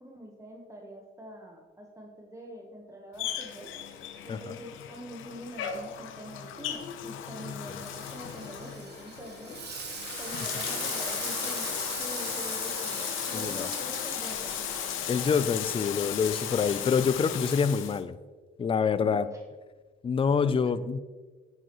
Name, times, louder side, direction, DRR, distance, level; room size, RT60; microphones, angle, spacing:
voice 1, 0.0-3.7 4.2-9.6 10.2-11.7 12.0-14.6 19.0-19.4 20.4-20.7, equal, 15° right, 0 dB, 1.2 m, -44 dB
Bathtub (filling or washing), 3.2-18.0, left 10 dB, 90° left, 0.8 m, -36 dB
Frying (food), 7.8-17.5, right 6 dB, 55° right, 1.4 m, -41 dB
voice 2, 13.3-13.7 15.1-18.2 18.6-19.3 20.0-21.0, left 6 dB, 25° left, 14 dB, 0.4 m, -26 dB
9.0 x 8.8 x 3.1 m, 1.3 s
cardioid pair, 90°, 20 cm